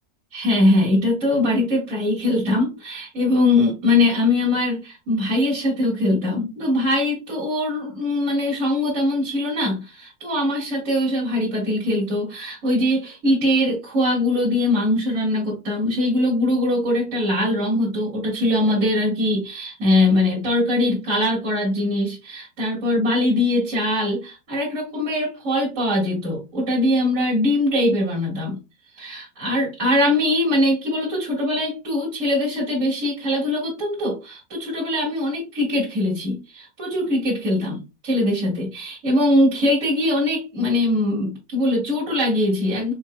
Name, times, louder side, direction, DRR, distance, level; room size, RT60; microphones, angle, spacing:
voice 1, 0.3-28.6 29.0-42.9, left 1 dB, 60° right, -5 dB, 2.2 m, -22 dB
4.5 x 4.5 x 2.2 m, 0.28 s
omnidirectional pair, 1.5 m